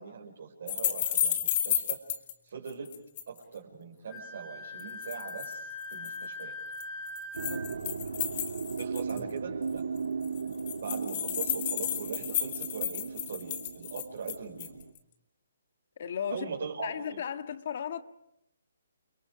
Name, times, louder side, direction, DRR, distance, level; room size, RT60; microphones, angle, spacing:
voice 1, 0.0-2.0 2.4-2.9 3.3-6.5 8.8-9.9 10.6-14.7 16.3-17.2, right 6 dB, 50° right, 5.2 m, -41 dB
sound 1, 0.7-2.3 2.7-3.4 4.8-5.5 5.9-6.2 6.8-9.3 9.7-9.8 10.0-10.1 10.2-14.8, left 11 dB, 30° left, 2.1 m, -32 dB
Wind instrument woodwind instrument, 4.1-7.8, left 2 dB, 10° left, 2.4 m, -41 dB
sound 2, 7.3-14.9, right 5 dB, 85° right, 2.1 m, -37 dB
voice 2, 16.0-16.5 16.8-18.0, left 8 dB, 45° left, 1.7 m, -35 dB
30.0 x 23.5 x 4.9 m
hypercardioid pair, 170°, 0 cm